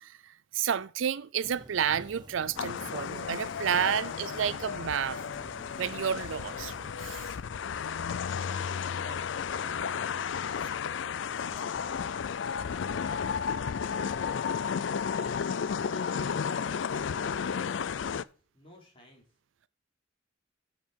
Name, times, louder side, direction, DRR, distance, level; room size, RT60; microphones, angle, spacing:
voice 1, 0.0-5.2 5.8-6.7 7.0-7.3, right 8 dB, 85° right, 0.5 m, -31 dB
sound 1, 1.4-6.9, right 1 dB, 25° right, 1.0 m, -50 dB
sound 2, 2.6-18.2, left 7 dB, 75° left, 0.4 m, -33 dB
voice 2, 7.7-10.8 11.4-12.2 12.6-14.8 15.1-18.3 18.5-19.3, left 1 dB, 30° left, 4.2 m, -53 dB
11.0 x 7.5 x 4.4 m
head